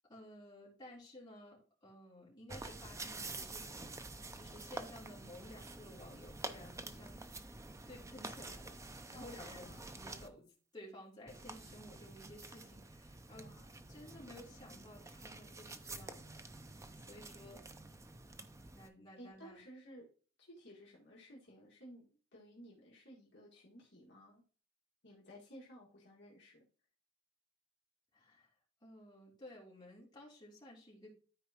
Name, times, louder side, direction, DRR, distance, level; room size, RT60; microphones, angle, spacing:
voice 1, 0.1-7.2 7.9-8.8 9.1-10.5 10.7-13.4 13.9-16.4 17.0-18.0 18.7-19.6 28.1-28.5 28.8-31.1, left 1 dB, 20° left, -5 dB, 2.9 m, -55 dB
sound 1, 2.5-10.3 11.3-18.9, right 2 dB, 15° right, 0.5 m, -49 dB
voice 2, 9.1-10.0 13.3-13.6 19.2-20.1 20.4-24.4 25.0-26.6, equal, 55° left, -5 dB, 1.9 m, -56 dB
13.0 x 4.6 x 2.9 m, 0.40 s
head